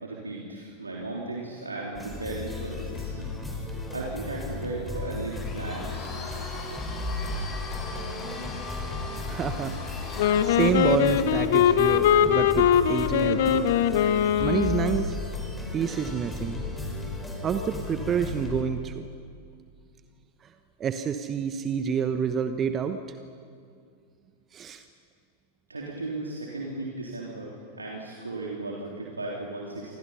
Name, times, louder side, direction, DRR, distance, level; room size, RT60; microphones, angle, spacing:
voice 1, 0.0-3.3 3.6-6.3 25.7-30.0, right 2 dB, 80° right, -3 dB, 3.4 m, -36 dB
sound 1, 1.9-18.6, left 2 dB, 5° left, 5.3 m, -35 dB
Domestic sounds home sounds, 5.3-11.2, left 3 dB, 25° left, 6.5 m, -40 dB
voice 2, 9.3-10.0 10.4-13.7 14.4-15.2 15.7-16.6 17.4-19.0 20.4-20.5 20.8-23.2 24.5-24.8, right 7 dB, 25° right, 9 dB, 1.1 m, -28 dB
Wind instrument woodwind instrument, 10.2-15.2, left 9 dB, 55° left, 1.3 m, -22 dB
28.0 x 25.0 x 5.7 m, 2.3 s
figure-of-eight pair, 90°, 0 cm